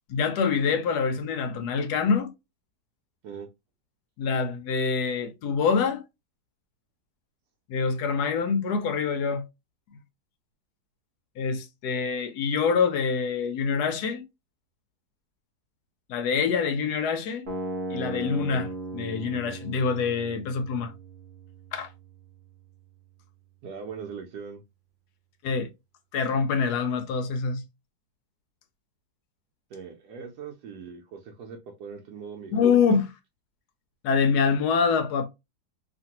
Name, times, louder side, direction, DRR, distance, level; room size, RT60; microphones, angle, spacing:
voice 1, 0.1-2.3 4.2-6.0 7.7-9.4 11.4-14.2 16.1-17.5 17.9-20.9 21.7-21.9 25.4-25.7 26.1-27.6 32.5-33.1 34.0-35.3, left 5 dB, 75° left, 1.1 m, -25 dB
sound 1, 17.5-23.5, right 2 dB, 50° right, 0.6 m, -38 dB
voice 2, 23.6-24.6 29.7-32.6, right 6 dB, 75° right, 1.1 m, -40 dB
2.8 x 2.5 x 2.8 m
omnidirectional pair, 1.8 m